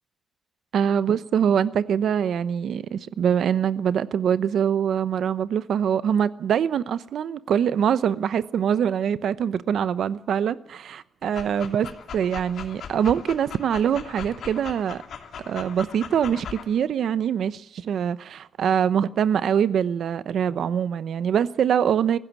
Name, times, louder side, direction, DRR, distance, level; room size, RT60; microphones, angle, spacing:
voice 1, 0.7-15.0 15.5-22.2, right 8 dB, 80° right, 0.8 m, -24 dB
Dog, 11.2-16.7, left 7 dB, 75° left, 2.7 m, -39 dB
20.0 x 15.5 x 8.3 m
wide cardioid pair, 140°, 0 cm